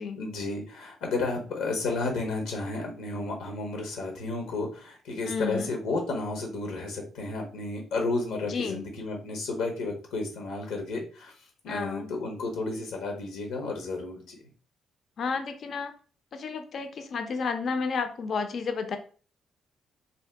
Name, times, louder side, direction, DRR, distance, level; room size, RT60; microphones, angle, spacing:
voice 1, 0.1-14.4, left 3 dB, 90° left, 2 dB, 0.8 m, -32 dB
voice 2, 5.2-5.7 8.4-8.8 11.7-12.1 15.2-15.9 16.3-19.0, left 5 dB, 55° left, 7 dB, 0.4 m, -31 dB
2.6 x 2.2 x 3.3 m, 0.40 s
cardioid pair, 90°, 0 cm